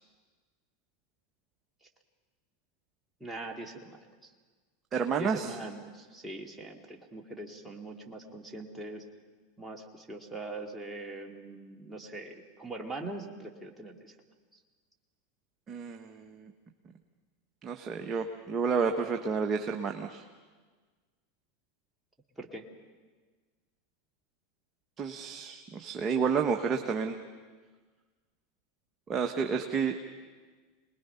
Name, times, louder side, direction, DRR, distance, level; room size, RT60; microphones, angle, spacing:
voice 1, 3.2-4.3 5.2-9.0 9.6-14.0 14.5-14.6 22.4-22.6, right 2 dB, 5° right, 0 dB, 2.4 m, -42 dB
voice 2, 4.9-5.5 15.7-16.5 17.6-20.2 25.0-27.2 29.1-30.0, right 5 dB, 30° right, 3 dB, 1.3 m, -30 dB
27.0 x 20.5 x 5.8 m, 1.4 s
hypercardioid pair, 100°, 0 cm